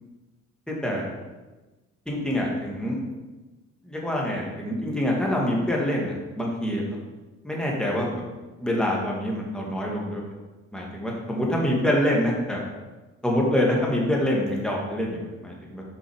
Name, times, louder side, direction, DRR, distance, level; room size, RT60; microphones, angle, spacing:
voice 1, 0.7-1.0 2.1-3.0 3.8-6.8 7.4-8.2 8.6-10.2 10.7-12.6 13.2-15.8, left 1 dB, 5° left, -3 dB, 2.0 m, -25 dB
6.0 x 5.5 x 4.9 m, 1.2 s
cardioid pair, 90°, 30 cm